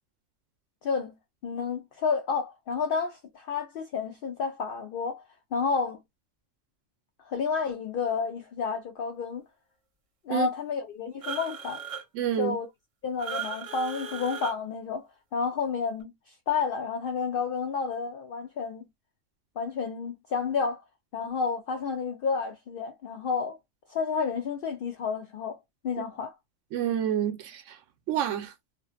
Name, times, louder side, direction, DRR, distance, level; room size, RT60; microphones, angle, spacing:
voice 1, 0.8-1.1 1.4-5.2 5.5-6.0 7.3-9.4 10.3-11.8 12.4-12.7 13.0-15.1 15.3-18.9 19.6-20.8 21.1-23.6 23.9-25.6 25.8-26.3, left 5 dB, 60° left, 0.6 m, -30 dB
sound 1, 11.2-12.0 13.2-14.5, right 6 dB, 55° right, 0.3 m, -36 dB
voice 2, 12.1-12.6 26.7-27.8 28.1-28.5, right 10 dB, 90° right, 0.9 m, -28 dB
2.5 x 2.4 x 2.3 m
omnidirectional pair, 1.2 m